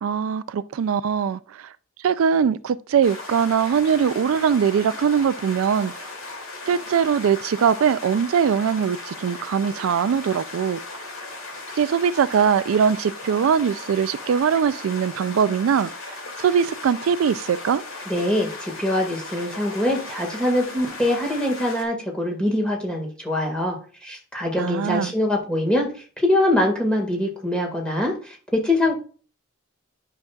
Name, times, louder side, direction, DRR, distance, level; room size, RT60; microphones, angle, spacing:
voice 1, 0.0-1.7 2.0-5.9 6.7-10.8 11.8-17.8 24.6-25.1, right 7 dB, 80° right, 0.3 m, -21 dB
sound 1, 3.0-21.8, left 3 dB, 75° left, 2.3 m, -37 dB
voice 2, 18.1-29.0, left 1 dB, 5° left, 1.8 m, -23 dB
10.5 x 5.8 x 2.4 m
head